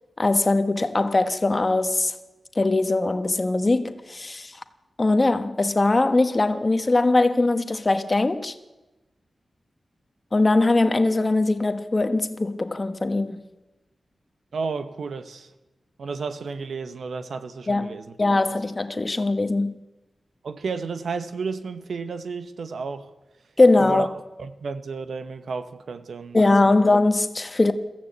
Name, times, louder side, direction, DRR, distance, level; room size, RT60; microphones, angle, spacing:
voice 1, 0.2-2.1 2.5-4.6 5.0-8.5 10.3-13.5 17.7-19.8 23.6-24.1 26.3-27.7, left 2 dB, 30° left, 1.3 m, -21 dB
voice 2, 14.5-15.5 16.0-18.1 20.4-23.1 23.8-24.1 24.4-26.8, right 4 dB, 85° right, 1.3 m, -32 dB
22.0 x 15.0 x 8.1 m
wide cardioid pair, 115°, 0 cm